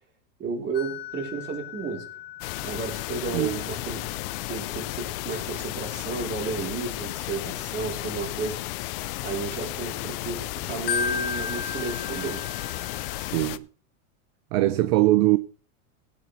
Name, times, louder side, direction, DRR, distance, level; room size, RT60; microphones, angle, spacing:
voice 1, 0.4-2.0 2.6-4.0 4.5-8.5 9.2-12.4, right 4 dB, 25° right, 3.4 m, -33 dB
sound 1, 0.7-10.2 10.5-13.4, left 6 dB, 20° left, 0.8 m, -37 dB
sound 2, 2.4-13.6, left 18 dB, 40° left, 0.5 m, -33 dB
voice 2, 13.2-13.7 14.5-15.4, right 17 dB, 45° right, 0.6 m, -21 dB
17.0 x 9.0 x 3.1 m
supercardioid pair, 150°, 44 cm